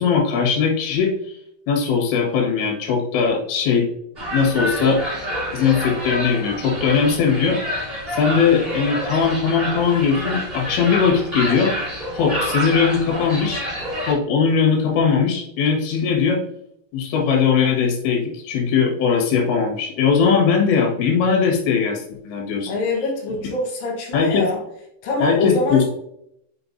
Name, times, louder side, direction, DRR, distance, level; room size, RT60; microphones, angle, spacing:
voice 1, 0.0-1.4 1.7-3.9 4.3-5.0 5.5-7.6 8.1-11.7 12.1-13.6 14.1-16.4 16.9-22.7 24.1-24.5 25.2-25.8, left 6 dB, 85° left, 0 dB, 3.9 m, -19 dB
sound 1, 4.2-14.1, equal, 20° right, 1.6 m, -28 dB
voice 2, 22.6-24.6 25.0-25.8, left 2 dB, 65° left, -4 dB, 2.6 m, -24 dB
7.9 x 5.7 x 2.6 m, 0.75 s
omnidirectional pair, 5.0 m